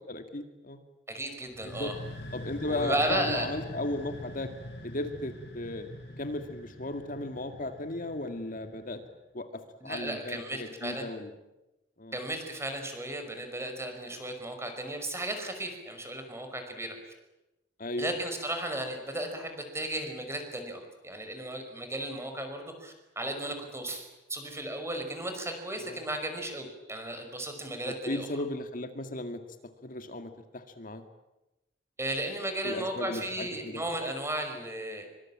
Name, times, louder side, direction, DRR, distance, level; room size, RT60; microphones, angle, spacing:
voice 1, 0.1-0.8 1.7-1.9 2.3-4.5 4.8-5.9 6.2-9.0 9.3-9.5 9.8-11.3 12.0-12.2 17.8-18.1 25.8-26.0 27.8-29.4 29.8-31.0 32.6-33.8, left 2 dB, 50° left, 7 dB, 2.1 m, -35 dB
voice 2, 1.1-1.9 2.7-3.5 9.8-11.1 12.1-17.0 18.0-28.3 32.0-35.1, right 1 dB, 15° right, 6 dB, 5.4 m, -35 dB
sound 1, 1.5-9.1, left 1 dB, 70° left, 6.7 m, -44 dB
25.0 x 24.5 x 8.8 m, 0.97 s
head